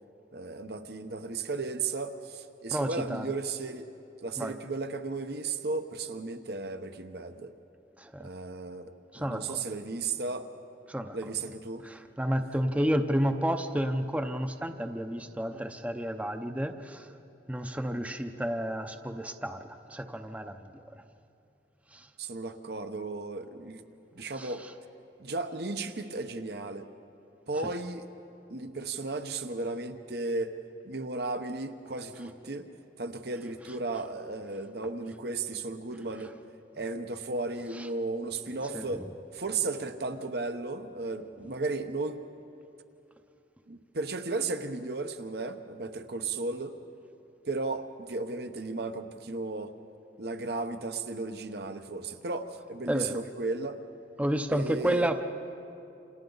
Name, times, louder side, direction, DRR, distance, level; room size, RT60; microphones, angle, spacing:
voice 1, 0.3-3.9 4.2-7.5 8.2-10.5 11.1-11.9 22.2-23.8 24.1-24.6 25.2-26.9 27.5-28.1 28.5-30.5 30.8-32.7 33.0-36.3 36.7-39.1 39.3-42.2 43.7-46.8 47.5-49.7 50.2-53.8 54.5-55.1, right 3 dB, 60° right, 8 dB, 1.0 m, -35 dB
voice 2, 2.7-3.3 4.4-4.5 8.0-8.3 9.1-9.6 10.9-11.2 11.8-17.1 17.5-20.8 21.9-22.1 24.3-24.7 27.5-27.7 37.7-37.9 38.7-39.1 52.9-53.2 54.2-55.2, equal, 10° right, 7 dB, 0.7 m, -31 dB
28.5 x 27.5 x 4.0 m, 2.8 s
head